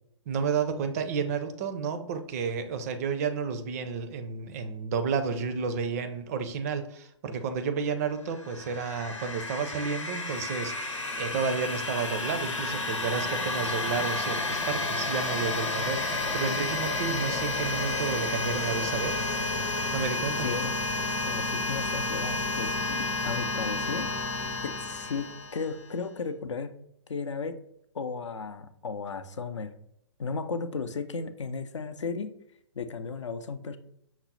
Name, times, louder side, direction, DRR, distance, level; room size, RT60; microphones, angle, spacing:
voice 1, 0.3-19.1 19.9-20.5, right 5 dB, 30° right, 8 dB, 0.4 m, -31 dB
sound 1, 8.3-25.9, left 2 dB, 90° left, 0.9 m, -31 dB
voice 2, 20.4-20.8 21.3-24.1 24.6-26.7 27.1-27.6 27.9-29.7 30.2-32.3 32.8-33.8, left 4 dB, 70° left, 10 dB, 0.5 m, -35 dB
5.9 x 2.0 x 4.0 m, 0.75 s
figure-of-eight pair, 125°, 16 cm